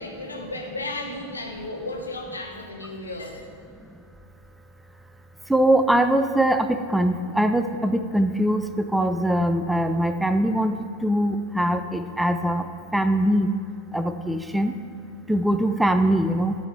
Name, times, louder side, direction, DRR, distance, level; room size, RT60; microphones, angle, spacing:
voice 1, 0.0-3.4, left 2 dB, 80° left, 2 dB, 1.3 m, -34 dB
voice 2, 5.5-10.7 11.0-13.5 13.9-14.7 15.3-16.6, right 1 dB, 5° right, 8 dB, 0.4 m, -22 dB
12.0 x 4.9 x 5.7 m, 2.4 s
figure-of-eight pair, 90°, 0 cm